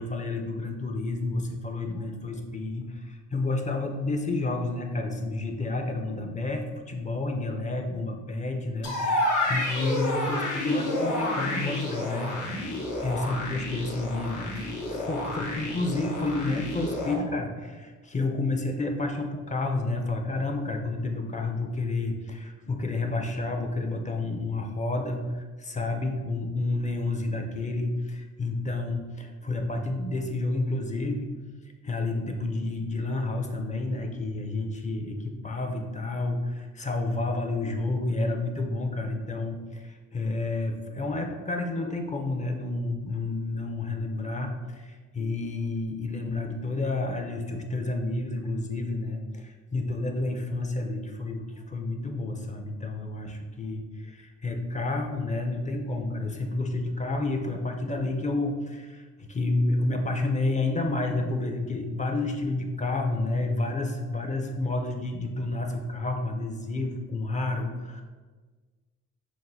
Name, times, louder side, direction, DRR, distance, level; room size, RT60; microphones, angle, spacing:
voice 1, 0.0-12.4 13.0-31.4 31.8-68.0, left 2 dB, 25° left, 3 dB, 0.5 m, -30 dB
sound 1, 8.8-17.1, left 1 dB, 75° left, 1.0 m, -30 dB
5.8 x 2.2 x 2.6 m, 1.4 s
cardioid pair, 90°, 30 cm